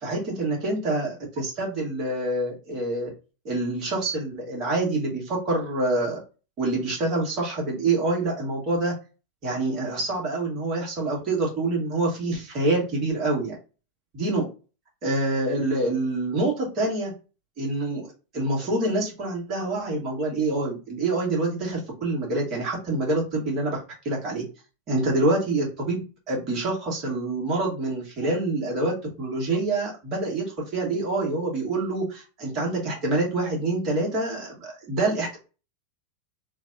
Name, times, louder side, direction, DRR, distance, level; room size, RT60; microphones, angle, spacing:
voice 1, 0.0-3.1 3.5-6.2 6.6-8.9 9.4-13.6 14.1-14.5 15.0-17.1 17.6-24.4 24.9-26.0 26.3-30.5 30.7-35.4, right 2 dB, 35° right, -1 dB, 1.8 m, -26 dB
3.3 x 2.5 x 3.6 m, 0.32 s
figure-of-eight pair, 90°, 0 cm